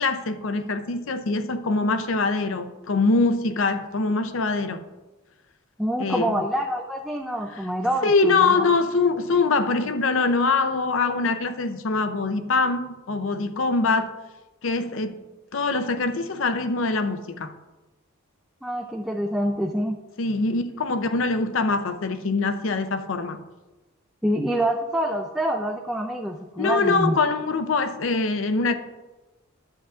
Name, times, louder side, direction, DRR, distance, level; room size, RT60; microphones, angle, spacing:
voice 1, 0.0-4.8 6.0-6.4 8.0-14.1 14.6-15.2 15.5-17.5 20.2-23.4 26.6-28.8, left 3 dB, 65° left, 10 dB, 0.6 m, -23 dB
voice 2, 5.8-8.7 18.6-20.0 24.2-27.2, right 1 dB, ahead, 0 dB, 0.4 m, -26 dB
10.5 x 8.1 x 2.5 m, 1.1 s
head